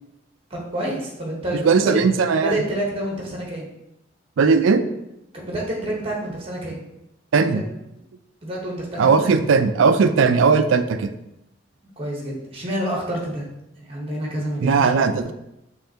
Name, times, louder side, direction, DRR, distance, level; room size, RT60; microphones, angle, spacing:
voice 1, 0.5-2.0 2.4-3.7 5.3-6.8 7.5-7.6 8.4-9.3 12.0-13.5 13.8-14.8, right 1 dB, 30° right, -3 dB, 1.1 m, -28 dB
voice 2, 1.6-2.6 4.4-4.8 7.3-7.6 9.0-11.1 14.6-15.3, right 5 dB, 75° right, 9 dB, 0.4 m, -18 dB
5.5 x 3.3 x 2.8 m, 0.87 s
head